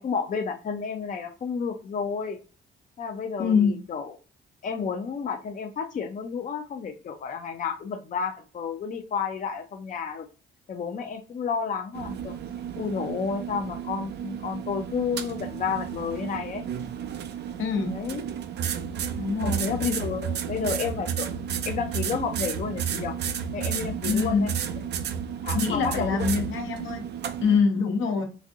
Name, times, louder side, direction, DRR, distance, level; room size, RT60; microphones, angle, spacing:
voice 1, 0.0-2.4 3.0-4.2 4.6-10.3 10.7-12.3 12.8-16.6 17.8-18.2 19.4-21.3 21.7-23.2 23.5-24.5 25.4-26.3, left 6 dB, 40° left, 5 dB, 0.5 m, -31 dB
voice 2, 3.4-3.8 17.6-17.9 19.1-19.6 24.1-24.5 25.5-27.0 27.4-28.2, left 5 dB, 75° left, 3 dB, 0.9 m, -24 dB
sound 1, 11.9-27.6, right 8 dB, 60° right, 0.4 m, -32 dB
4.1 x 2.5 x 2.4 m, 0.35 s
cardioid pair, 90°, 20 cm